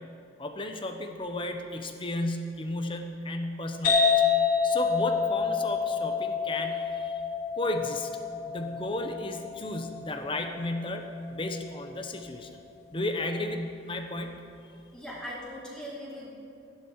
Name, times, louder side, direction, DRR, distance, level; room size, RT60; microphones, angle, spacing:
voice 1, 0.4-4.2 4.6-7.2 7.6-8.1 8.5-12.6 12.9-14.4, left 1 dB, 30° left, 5 dB, 1.0 m, -33 dB
sound 1, 3.8-11.3, left 5 dB, 50° left, 3.4 m, -28 dB
voice 2, 14.9-16.3, equal, 5° left, -7 dB, 2.5 m, -40 dB
15.5 x 11.0 x 4.8 m, 2.6 s
head